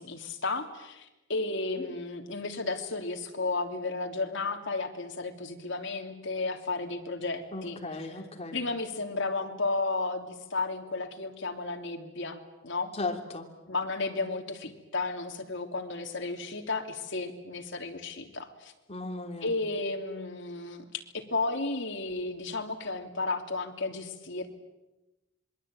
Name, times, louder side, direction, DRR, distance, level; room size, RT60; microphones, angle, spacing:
voice 1, 0.0-7.8 8.5-12.9 13.7-18.7 19.4-20.8 21.1-24.5, left 3 dB, 65° left, 5 dB, 3.1 m, -33 dB
voice 2, 7.5-8.6 12.9-13.5 18.9-19.6, left 2 dB, 30° left, 4 dB, 3.3 m, -36 dB
26.5 x 22.5 x 9.1 m, 0.99 s
head